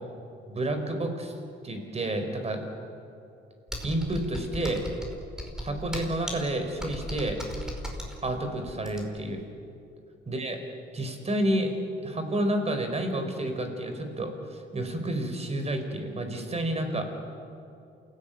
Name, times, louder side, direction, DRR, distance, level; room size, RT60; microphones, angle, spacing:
voice 1, 0.5-1.3 1.6-2.6 3.8-4.9 5.6-7.4 8.2-9.4 10.3-10.6 10.9-11.7 12.0-17.0, right 1 dB, 30° right, 6 dB, 4.7 m, -30 dB
Computer keyboard, 3.7-9.3, equal, 5° right, 4.9 m, -37 dB
28.5 x 17.0 x 9.3 m, 2.7 s
cardioid pair, 90°, 20 cm